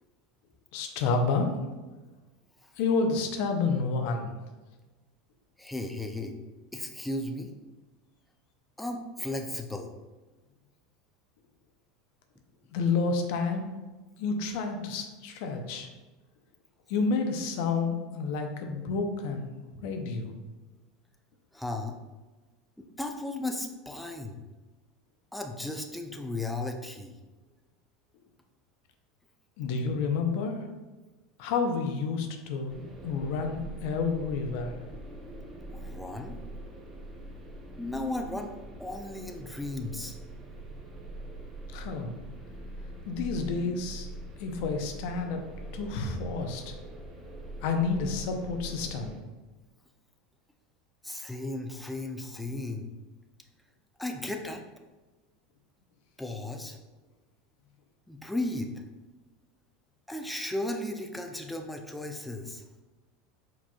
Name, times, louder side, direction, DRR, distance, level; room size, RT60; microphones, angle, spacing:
voice 1, 0.7-1.6 2.8-4.3 12.7-13.7 14.2-15.9 16.9-20.4 29.6-30.6 31.4-34.7 41.7-42.1 43.1-44.1 44.4-45.4 45.7-46.7 47.6-49.2, left 4 dB, 70° left, 4 dB, 0.6 m, -30 dB
voice 2, 5.6-6.3 6.7-7.5 8.8-9.9 21.5-22.0 22.8-24.4 25.3-27.1 35.7-36.4 37.8-38.5 38.8-40.2 51.0-52.9 54.0-54.6 56.2-56.8 58.1-58.7 60.1-62.6, left 2 dB, 5° left, 3 dB, 0.5 m, -35 dB
sound 1, 32.7-49.2, right 1 dB, 20° right, 1.1 m, -43 dB
4.8 x 4.1 x 2.3 m, 1.2 s
hypercardioid pair, 100°, 0 cm